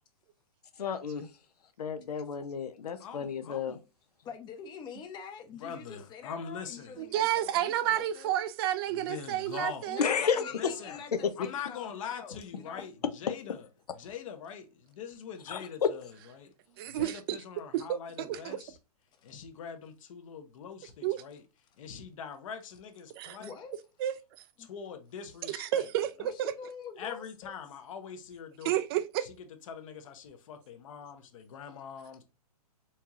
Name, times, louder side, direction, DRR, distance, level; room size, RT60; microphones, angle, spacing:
voice 1, 0.8-1.3 1.8-3.8 10.0-10.5 10.9-11.0 11.2-11.3 15.5-15.7, left 6 dB, 80° left, 0.7 m, -31 dB
voice 2, 3.0-3.8 5.6-7.0 8.9-10.0 10.6-11.0 11.4-13.7 13.9-16.5 16.9-18.8 19.2-21.4 21.8-23.5 24.6-25.9 27.0-28.8 29.2-29.3 29.7-32.2, left 7 dB, 55° left, 1.0 m, -43 dB
voice 3, 4.2-8.3 9.9-12.9 19.2-19.3 23.4-23.8 24.6-24.7 26.2-27.5, left 6 dB, 20° left, 0.7 m, -46 dB
voice 4, 7.0-10.1 16.8-17.4 17.7-18.6 21.0-21.2 23.2-23.4 24.0-24.1 25.4-26.5 28.6-29.3, right 12 dB, 40° right, 0.4 m, -31 dB
4.4 x 2.9 x 2.4 m
hypercardioid pair, 130°, 20 cm